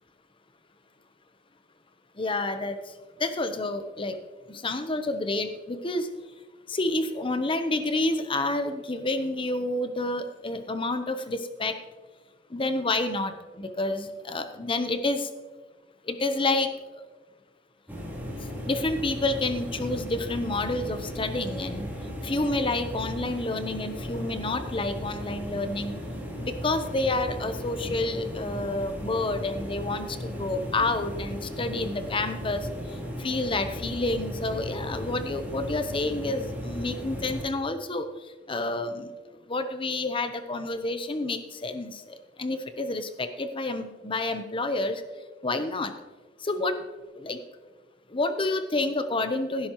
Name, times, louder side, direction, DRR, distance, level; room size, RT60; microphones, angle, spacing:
voice 1, 2.2-2.8 3.2-4.2 4.5-6.1 6.7-11.8 12.5-15.3 16.0-16.7 18.6-21.9 22.2-25.9 26.4-32.7 33.2-38.1 38.5-39.1 39.5-42.0 42.4-45.0 45.4-45.9 46.4-46.8 47.2-47.4 48.1-49.7, left 2 dB, 30° left, 8 dB, 0.9 m, -29 dB
sound 1, 17.9-37.5, equal, 10° right, 3.2 m, -36 dB
16.5 x 11.5 x 3.1 m, 1.3 s
head